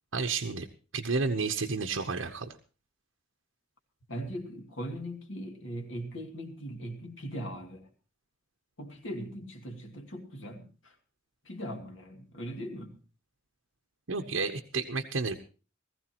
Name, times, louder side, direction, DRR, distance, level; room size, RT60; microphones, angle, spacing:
voice 1, 0.1-0.7 0.9-2.6 14.1-15.3, right 4 dB, 75° right, 4 dB, 1.0 m, -31 dB
voice 2, 4.1-7.9 8.8-11.0 11.4-13.0, equal, 70° left, 3 dB, 2.6 m, -40 dB
19.5 x 15.0 x 3.0 m, 0.35 s
head